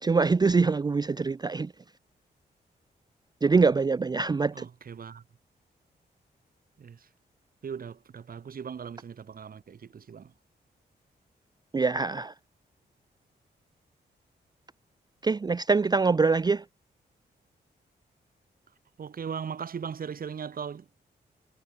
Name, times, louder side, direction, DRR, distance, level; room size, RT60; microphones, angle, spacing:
voice 1, 0.0-1.7 3.4-4.7 11.7-12.3 15.2-16.7, right 4 dB, 25° right, 0.4 m, -24 dB
voice 2, 4.5-5.2 6.8-7.1 7.6-10.3 19.0-21.1, right 7 dB, 55° right, 1.0 m, -39 dB
cardioid pair, 75°, 18 cm